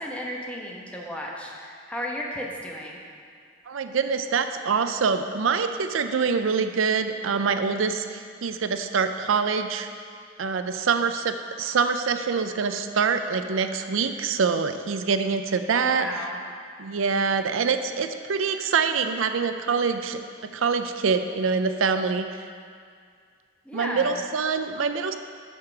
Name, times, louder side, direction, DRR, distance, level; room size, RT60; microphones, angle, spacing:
voice 1, 0.0-3.0 15.7-16.4 23.6-24.2, equal, 5° left, -2 dB, 1.0 m, -34 dB
voice 2, 3.7-9.9 10.4-16.1 16.8-20.2 20.5-22.3 23.7-25.2, right 5 dB, 85° right, 8 dB, 0.5 m, -25 dB
8.0 x 6.6 x 5.9 m, 2.2 s
head